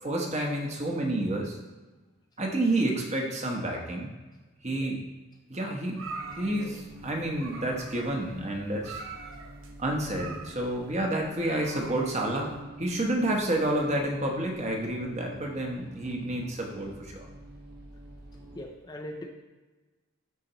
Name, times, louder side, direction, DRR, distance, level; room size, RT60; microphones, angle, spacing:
voice 1, 0.0-1.6 2.4-4.1 4.6-5.0 5.5-6.0 6.3-9.0 9.8-17.3, right 1 dB, 30° right, 1 dB, 1.0 m, -29 dB
sound 1, 5.9-12.6, right 4 dB, 70° right, 0.8 m, -44 dB
sound 2, 6.1-18.6, right 1 dB, 50° right, 1.2 m, -48 dB
voice 2, 18.6-19.3, left 1 dB, 20° left, 1 dB, 0.5 m, -40 dB
12.0 x 4.4 x 3.0 m, 1.2 s
head